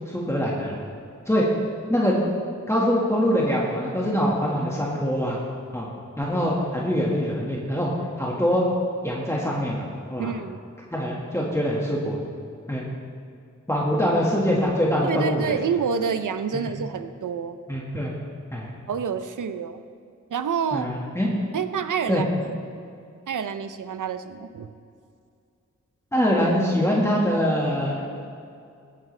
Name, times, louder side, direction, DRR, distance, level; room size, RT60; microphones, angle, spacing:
voice 1, 0.1-0.8 1.3-1.5 1.9-2.2 2.7-5.4 5.7-5.9 6.2-7.9 8.2-8.7 9.0-10.3 10.9-12.2 12.7-12.8 13.7-15.5 16.5-16.7 17.7-18.1 18.5-18.7 20.7-21.3 22.1-22.2 26.1-28.2, equal, 10° left, -5 dB, 1.8 m, -24 dB
voice 2, 10.2-10.6 15.0-17.6 18.9-19.8 20.3-20.9 21.5-22.6 23.3-24.7, right 6 dB, 80° right, 10 dB, 0.7 m, -28 dB
17.5 x 9.3 x 3.3 m, 2.4 s
wide cardioid pair, 65°, 30 cm